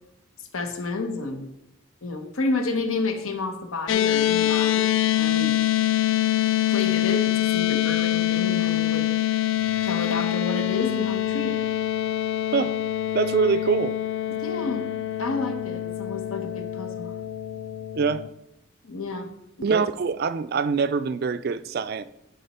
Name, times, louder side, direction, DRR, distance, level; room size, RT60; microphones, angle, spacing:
voice 1, 0.4-1.5 2.0-5.6 6.7-9.1 9.4-11.6 14.4-14.9 15.2-17.1 18.8-19.3, left 3 dB, 85° left, 1.0 m, -30 dB
sound 1, 3.9-18.3, left 12 dB, 65° left, 0.3 m, -25 dB
voice 2, 13.1-14.0 14.3-14.4 17.9-18.2 19.6-22.0, right 5 dB, 45° right, 0.3 m, -24 dB
10.0 x 4.3 x 4.2 m
head